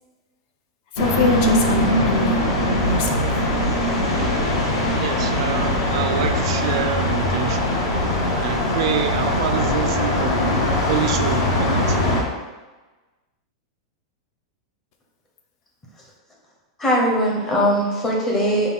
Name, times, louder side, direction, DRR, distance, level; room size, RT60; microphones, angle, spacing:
voice 1, 0.9-2.4 2.9-3.5, left 5 dB, 40° left, 4 dB, 0.4 m, -24 dB
sound 1, 1.0-12.2, left 1 dB, 60° left, 1.0 m, -21 dB
voice 2, 5.0-7.8 8.4-12.0, right 8 dB, 65° right, 8 dB, 0.3 m, -27 dB
voice 3, 16.8-18.7, equal, 15° left, -3 dB, 0.8 m, -20 dB
5.1 x 2.3 x 3.5 m, 1.2 s
supercardioid pair, 165°, 3 cm